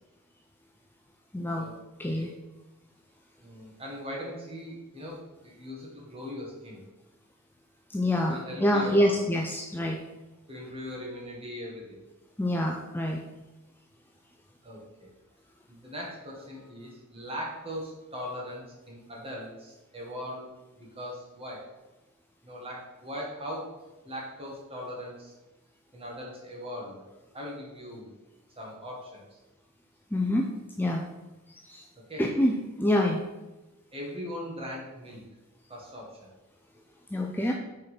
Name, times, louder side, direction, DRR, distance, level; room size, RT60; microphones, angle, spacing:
voice 1, 1.3-1.7 2.0-2.3 7.9-10.0 12.4-13.2 30.1-30.5 30.8-31.0 31.6-31.8 32.2-33.2 37.1-37.5, left 1 dB, 10° left, 1 dB, 0.5 m, -26 dB
voice 2, 2.0-2.3 3.4-5.2 5.4-6.8 8.3-9.1 10.5-12.0 14.6-15.1 15.7-20.5 20.8-21.7 22.4-23.7 24.0-25.3 25.9-27.0 27.3-28.1 28.6-29.2 32.1-32.2 33.9-35.2 35.7-36.3, equal, 25° right, -3 dB, 2.0 m, -39 dB
6.2 x 4.5 x 5.8 m, 1.1 s
head